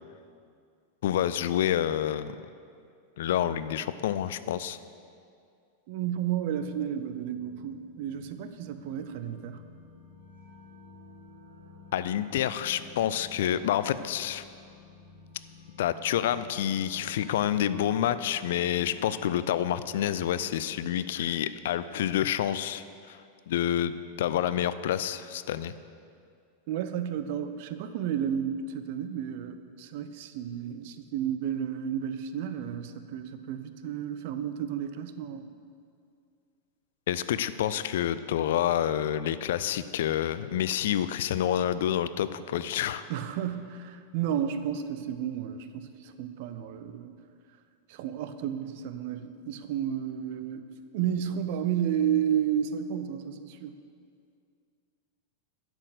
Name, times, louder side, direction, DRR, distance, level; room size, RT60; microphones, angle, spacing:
voice 1, 1.0-2.3 3.2-4.8 11.9-14.4 15.8-23.2 23.5-25.7 37.1-43.0, left 10 dB, 55° left, 14 dB, 0.4 m, -28 dB
voice 2, 5.9-9.6 26.7-35.5 43.1-47.2 47.9-50.6 50.9-53.8, right 9 dB, 50° right, 10 dB, 0.6 m, -32 dB
sound 1, 7.2-19.3, left 5 dB, 65° right, 3.1 m, -51 dB
11.5 x 6.2 x 6.6 m, 2.3 s
figure-of-eight pair, 90°, 0 cm